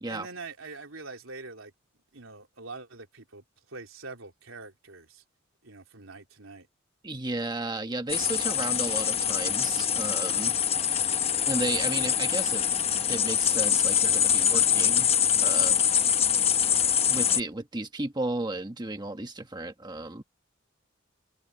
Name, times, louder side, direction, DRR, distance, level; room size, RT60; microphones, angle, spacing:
voice 1, 0.1-1.7 2.1-5.2 5.6-6.7 16.7-17.0, right 3 dB, 90° right, 3.8 m, -44 dB
voice 2, 7.0-10.5 11.5-12.7 13.1-15.1 15.4-15.8 17.1-20.2, right 2 dB, 20° right, 1.3 m, -33 dB
sound 1, 8.1-17.4, left 9 dB, 30° left, 0.9 m, -24 dB
head